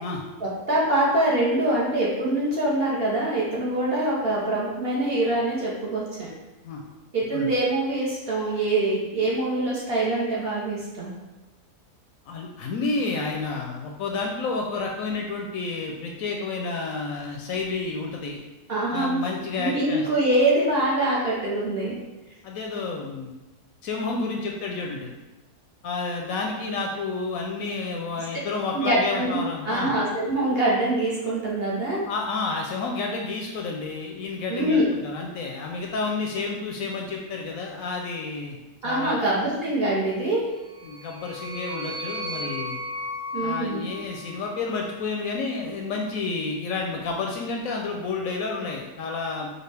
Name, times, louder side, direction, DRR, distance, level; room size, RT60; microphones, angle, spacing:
voice 1, 0.4-6.3 7.1-11.1 18.7-19.2 19.6-22.0 28.7-32.0 34.5-35.0 38.8-40.4 43.3-43.9, right 1 dB, 45° right, -6 dB, 0.9 m, -24 dB
voice 2, 12.3-18.4 18.9-20.1 22.4-23.3 23.8-25.1 25.8-29.9 32.1-38.6 38.8-39.2 40.8-42.8 43.4-49.5, left 3 dB, 70° left, 1 dB, 0.9 m, -30 dB
sound 1, 40.6-45.0, left 2 dB, 75° right, 0.5 m, -35 dB
5.1 x 2.3 x 3.3 m, 1.1 s
omnidirectional pair, 1.6 m